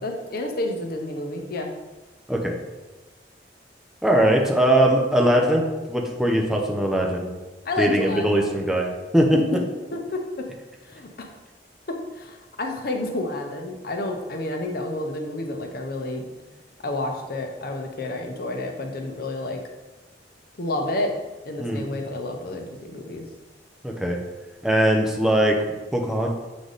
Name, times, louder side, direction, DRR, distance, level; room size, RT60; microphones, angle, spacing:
voice 1, 0.0-1.7 7.6-8.5 9.3-9.6 9.9-10.4 10.8-11.3 12.1-16.3 16.8-19.6 20.6-21.1 21.4-23.3, left 2 dB, 55° left, 3 dB, 0.8 m, -30 dB
voice 2, 4.0-7.3 7.8-9.4 21.6-21.9 23.8-24.2 24.6-25.6 25.9-26.3, right 1 dB, 5° right, 0 dB, 0.7 m, -21 dB
7.7 x 3.4 x 4.0 m, 1.1 s
head